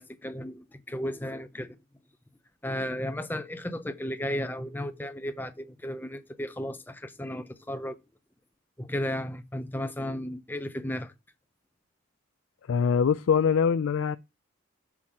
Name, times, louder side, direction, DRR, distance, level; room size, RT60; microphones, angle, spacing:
voice 1, 0.0-1.7 2.6-8.0 8.8-11.1, equal, 10° left, 0.7 m, -34 dB
voice 2, 12.7-14.2, left 6 dB, 75° left, 0.4 m, -23 dB
6.0 x 5.7 x 4.9 m
head